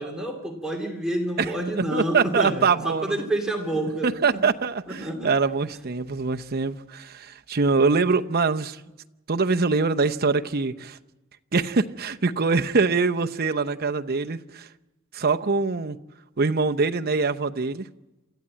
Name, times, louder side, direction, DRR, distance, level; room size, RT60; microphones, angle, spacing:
voice 1, 0.0-4.4 4.9-5.3, right 1 dB, 5° right, 2.4 m, -28 dB
voice 2, 1.8-3.3 4.0-8.8 9.3-11.0 11.5-14.7 15.1-16.0 16.4-17.9, right 4 dB, 45° right, 0.7 m, -24 dB
28.0 x 13.5 x 8.6 m
head